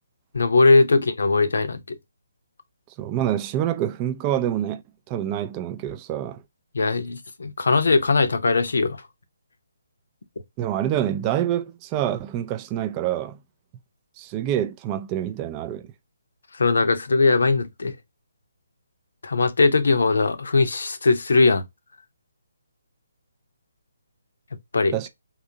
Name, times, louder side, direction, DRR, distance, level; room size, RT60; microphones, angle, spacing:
voice 1, 0.3-2.0 6.7-9.0 16.5-17.9 19.2-21.6 24.7-25.0, left 3 dB, 65° left, 0.7 m, -20 dB
voice 2, 3.0-4.8 5.1-6.4 10.6-13.4 14.2-15.9 24.9-25.1, right 11 dB, 20° right, 0.4 m, -26 dB
3.7 x 2.7 x 2.7 m
figure-of-eight pair, 140°, 0 cm